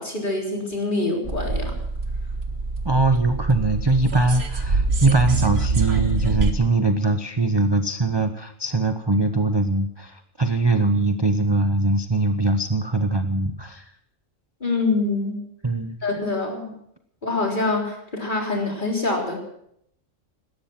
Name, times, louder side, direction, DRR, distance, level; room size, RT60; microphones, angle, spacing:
voice 1, 0.0-1.8 14.6-15.4 16.0-16.7 17.2-19.4, left 3 dB, 40° left, 0 dB, 3.9 m, -25 dB
sound 1, 1.2-6.5, right 3 dB, 55° right, 1.7 m, -25 dB
voice 2, 2.8-13.9 15.6-16.0, right 2 dB, 25° right, 8 dB, 0.7 m, -22 dB
17.5 x 13.0 x 5.9 m, 0.72 s
omnidirectional pair, 1.3 m